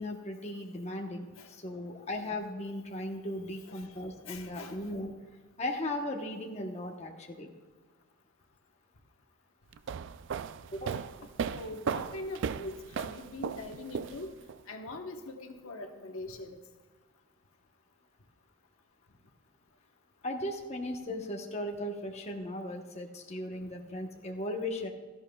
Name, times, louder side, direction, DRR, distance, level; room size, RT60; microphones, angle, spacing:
voice 1, 0.0-5.1 5.6-7.5 10.7-11.0 20.2-24.9, left 1 dB, 30° left, 1 dB, 1.0 m, -37 dB
voice 2, 4.3-4.8 11.5-14.3 14.7-16.6, left 2 dB, 75° left, 4 dB, 1.1 m, -42 dB
sound 1, 9.7-14.6, right 6 dB, 60° right, 0.3 m, -36 dB
16.5 x 13.0 x 2.3 m, 1.4 s
head